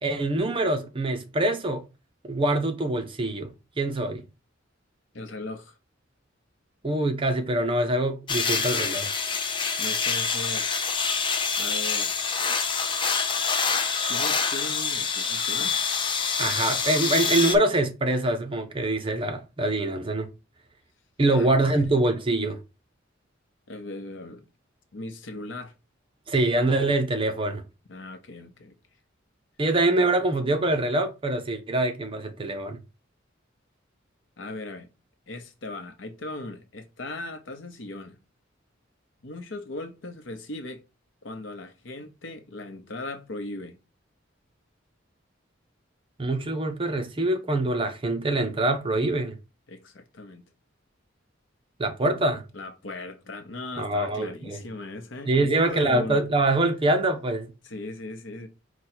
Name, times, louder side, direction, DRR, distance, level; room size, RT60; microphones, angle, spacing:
voice 1, 0.0-1.8 2.2-4.2 6.8-9.1 16.4-20.3 21.2-22.6 26.3-27.6 29.6-32.8 46.2-49.4 51.8-52.4 53.8-54.6 55.3-57.5, right 2 dB, 25° right, 0.6 m, -24 dB
voice 2, 5.1-5.8 9.8-10.7 11.6-12.1 14.1-15.8 21.3-21.5 21.7-21.9 23.7-24.4 24.9-25.7 27.9-28.7 34.4-34.9 35.3-38.2 39.2-40.8 41.2-43.8 49.7-50.4 52.5-56.2 57.6-58.5, left 2 dB, 70° left, 0.8 m, -38 dB
sound 1, 8.3-17.6, left 5 dB, 25° left, 0.5 m, -26 dB
4.9 x 2.3 x 4.3 m
head